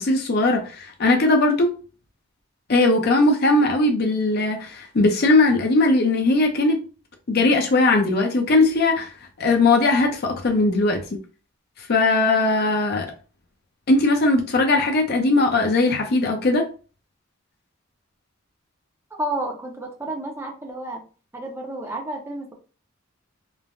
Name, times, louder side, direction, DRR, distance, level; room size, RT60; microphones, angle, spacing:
voice 1, 0.0-1.7 2.7-6.8 7.3-9.1 9.4-11.0 11.9-13.1 13.9-16.6, left 2 dB, 50° left, 0.5 m, -19 dB
voice 2, 19.2-21.0 21.3-22.5, right 1 dB, 10° right, 0.5 m, -31 dB
3.1 x 2.1 x 2.5 m
head